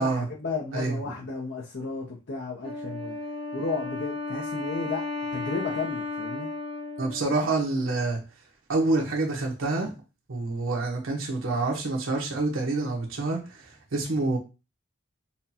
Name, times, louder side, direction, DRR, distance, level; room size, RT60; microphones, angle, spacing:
voice 1, 0.0-3.1 3.5-5.0 5.3-6.5, left 3 dB, 55° left, -4 dB, 0.7 m, -33 dB
voice 2, 0.7-1.1 7.0-8.2 8.7-9.9 10.3-13.4 13.9-14.4, right 2 dB, 75° right, -1 dB, 1.0 m, -27 dB
Wind instrument woodwind instrument, 2.6-8.0, left 3 dB, 30° right, 1.0 m, -34 dB
5.6 x 2.2 x 2.9 m, 0.29 s
head